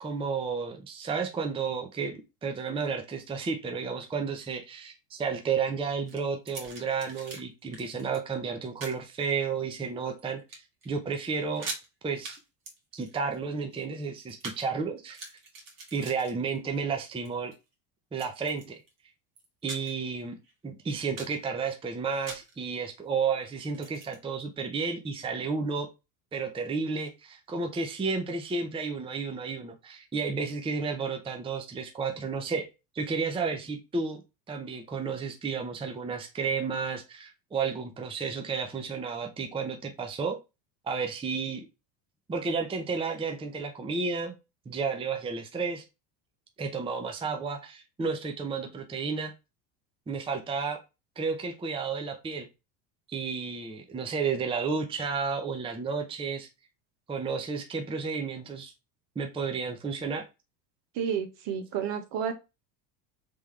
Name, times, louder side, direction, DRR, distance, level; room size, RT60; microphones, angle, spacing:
voice 1, 0.0-11.7 12.0-12.4 12.9-15.2 15.9-17.5 18.1-18.8 19.6-20.4 20.6-25.9 26.3-32.7 32.9-34.2 34.5-40.4 40.8-41.7 42.3-44.4 44.7-45.8 46.6-49.3 50.1-50.8 51.2-52.5 53.1-56.5 57.1-58.7 59.2-60.2, right 5 dB, 10° right, 0.6 m, -32 dB
sound 1, 6.1-7.4 7.7-8.2 8.8-9.0 9.6-10.2 10.5-10.9 11.1-11.2 11.5-11.9 12.2-12.4 12.7-14.7 15.0-16.8 17.1-17.5 18.2-18.9 19.4-20.1 20.4-20.5 20.9-21.4 22.3-22.6 23.7-24.2, right 3 dB, 40° right, 1.5 m, -43 dB
voice 2, 60.9-62.3, right 7 dB, 60° right, 1.2 m, -31 dB
3.5 x 3.4 x 3.2 m
supercardioid pair, 105°, 49 cm